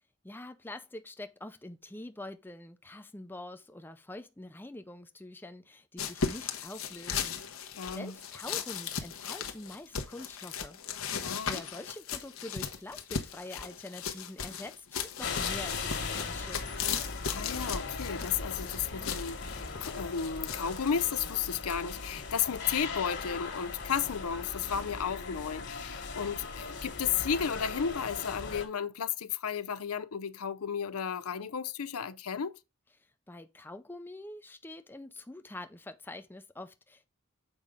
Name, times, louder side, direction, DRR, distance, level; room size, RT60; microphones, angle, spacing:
voice 1, 0.0-10.8 11.1-16.6 33.0-37.1, left 2 dB, 10° left, 0.5 m, -45 dB
sound 1, 6.0-21.1, left 6 dB, 70° left, 1.0 m, -37 dB
voice 2, 7.8-8.1 11.2-11.6 17.3-32.5, left 7 dB, 85° left, 0.6 m, -33 dB
sound 2, 15.2-28.7, left 4 dB, 55° left, 1.6 m, -39 dB
7.2 x 5.1 x 3.6 m
head